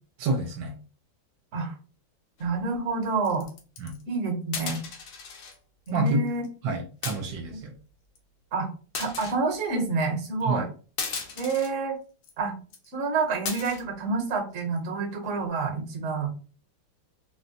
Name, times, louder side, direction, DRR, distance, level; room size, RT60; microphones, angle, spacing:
voice 1, 0.2-0.7 3.8-4.0 5.9-6.2 6.6-7.7 10.4-10.7, right 2 dB, 75° right, 3 dB, 1.3 m, -28 dB
sound 1, 2.4-2.6 3.2-4.0 4.5-5.6 5.9-6.0 6.3-6.5 7.0-7.5 8.2-8.3 8.9-9.4 10.3-10.4 11.0-11.7 12.2-12.3 12.7-12.9 13.5-13.8 14.4-14.8, left 5 dB, 65° left, 1.1 m, -36 dB
voice 2, 2.4-3.5 4.1-4.8 5.9-6.4 8.5-8.7 9.0-10.6 11.4-12.0 12.4-12.5 12.9-16.3, right 4 dB, 45° right, 2 dB, 1.2 m, -28 dB
3.9 x 2.1 x 2.7 m, 0.36 s
omnidirectional pair, 2.2 m